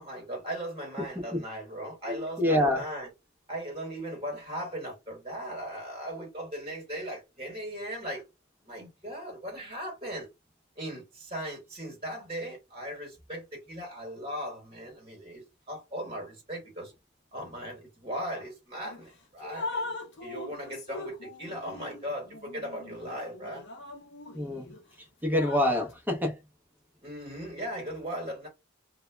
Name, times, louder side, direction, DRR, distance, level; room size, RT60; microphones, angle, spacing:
voice 1, 0.0-3.1 3.5-8.2 8.6-10.3 10.8-16.9 17.3-20.0 20.2-23.7 27.0-28.5, equal, 25° right, 1.1 m, -38 dB
voice 2, 1.1-1.5 2.1-2.8 24.3-26.4, left 1 dB, 10° right, 0.6 m, -27 dB
Drip, 18.8-19.0 19.4-24.8 25.2-25.9, left 2 dB, 55° left, 0.6 m, -40 dB
2.1 x 2.0 x 3.2 m
head